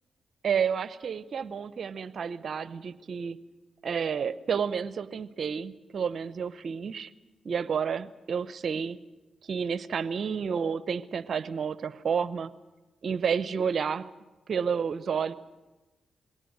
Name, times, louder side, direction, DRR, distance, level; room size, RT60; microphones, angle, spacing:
voice 1, 0.4-3.4 3.8-7.1 7.4-9.0 9.5-12.5 13.0-14.1 14.5-15.3, right 6 dB, 65° right, 16 dB, 0.8 m, -30 dB
21.0 x 17.5 x 7.9 m, 1.1 s
supercardioid pair, 50°, 0 cm